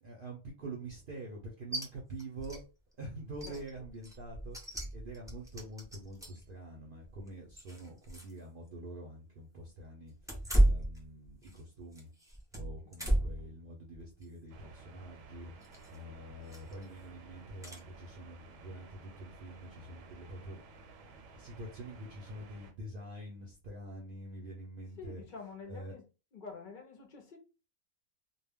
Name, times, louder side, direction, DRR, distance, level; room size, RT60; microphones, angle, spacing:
voice 1, 0.0-2.6 3.0-12.1 12.5-15.5 15.9-20.6 21.3-25.2 25.7-25.9, right 1 dB, 55° right, 0.6 m, -46 dB
sound 1, 1.7-1.9 2.2-2.6 2.9-3.0 3.3-6.5 7.0-8.4 8.7-8.8 10.2-11.6 11.9-13.5 13.9-14.2 15.6-16.0 16.5-16.8 17.6-17.8, right 1 dB, 5° right, 0.3 m, -33 dB
voice 2, 13.0-13.5 25.0-26.1 26.3-27.4, left 5 dB, 55° left, 0.6 m, -48 dB
sound 2, 14.5-22.7, right 3 dB, 75° right, 0.9 m, -54 dB
2.2 x 2.1 x 3.4 m
omnidirectional pair, 1.4 m